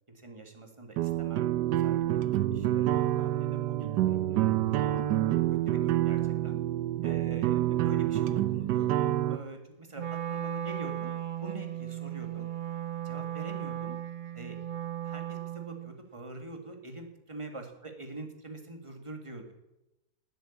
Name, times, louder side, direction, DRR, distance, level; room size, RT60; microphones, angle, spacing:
voice 1, 0.1-4.8 5.7-6.6 7.0-8.9 9.3-11.1 11.4-12.5 13.0-14.0 14.3-14.6 15.0-19.5, right 2 dB, 20° right, 4 dB, 2.2 m, -44 dB
sound 1, 1.0-9.4, right 13 dB, 85° right, 1.3 m, -27 dB
Wind instrument woodwind instrument, 9.9-15.9, right 11 dB, 45° right, 0.6 m, -36 dB
18.5 x 8.1 x 8.7 m, 0.92 s
omnidirectional pair, 1.8 m